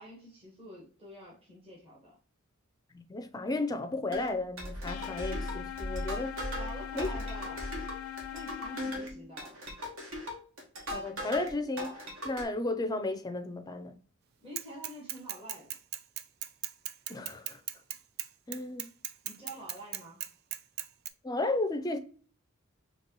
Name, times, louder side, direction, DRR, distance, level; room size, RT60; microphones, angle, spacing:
voice 1, 0.0-2.2 6.5-7.7 8.3-9.6 14.4-15.7 19.2-20.3, equal, 25° right, 1.3 m, -47 dB
voice 2, 2.9-6.4 6.9-7.1 10.9-13.9 17.1-17.6 18.5-18.9 21.2-22.0, left 2 dB, 20° left, 0.4 m, -34 dB
sound 1, 4.1-11.5 11.8-12.4, equal, 70° right, 1.3 m, -38 dB
sound 2, 4.9-9.0, left 11 dB, 80° left, 0.4 m, -41 dB
Bicycle / Mechanisms, 14.6-21.1, right 11 dB, 50° right, 0.3 m, -37 dB
4.4 x 2.9 x 2.9 m
head